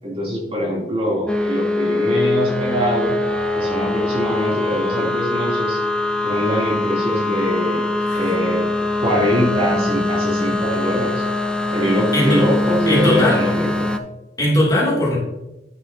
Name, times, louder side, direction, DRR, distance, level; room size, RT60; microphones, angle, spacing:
voice 1, 0.0-3.2 3.5-5.8 6.2-7.9 8.1-8.7 9.0-11.2 11.7-13.9, equal, 35° right, -5 dB, 2.9 m, -23 dB
sound 1, 1.3-14.0, left 2 dB, 5° left, 0.5 m, -22 dB
voice 2, 8.0-8.3 12.1-12.4 12.8-13.4 14.4-15.2, left 1 dB, 20° left, -6 dB, 2.6 m, -18 dB
10.5 x 6.8 x 2.8 m, 0.96 s
head